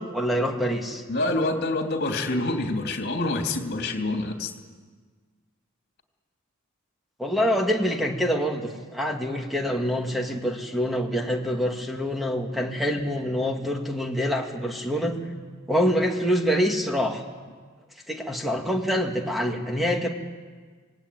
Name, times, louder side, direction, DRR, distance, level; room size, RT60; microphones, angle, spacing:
voice 1, 0.0-1.0 7.2-15.4 15.7-17.2 18.1-20.1, equal, ahead, 2 dB, 2.3 m, -26 dB
voice 2, 1.1-4.5, left 2 dB, 50° left, 4 dB, 3.0 m, -26 dB
25.5 x 18.5 x 9.4 m, 1.5 s
head